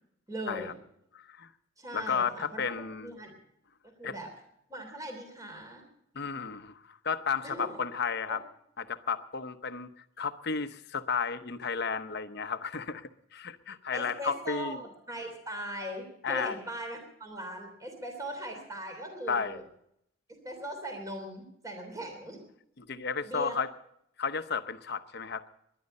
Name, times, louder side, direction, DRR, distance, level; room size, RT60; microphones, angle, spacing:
voice 1, 0.3-0.7 1.8-2.8 3.0-3.3 4.0-4.3 4.7-5.9 7.4-7.8 8.3-8.4 13.9-19.6 20.4-22.4 23.2-23.6, right 1 dB, 15° right, 4 dB, 3.2 m, -39 dB
voice 2, 1.1-1.5 1.9-3.1 4.0-4.2 6.1-8.4 8.8-14.8 16.2-16.6 19.3-19.6 22.8-23.7 24.2-25.4, left 5 dB, 55° left, 10 dB, 0.9 m, -33 dB
21.5 x 11.0 x 5.4 m, 0.75 s
head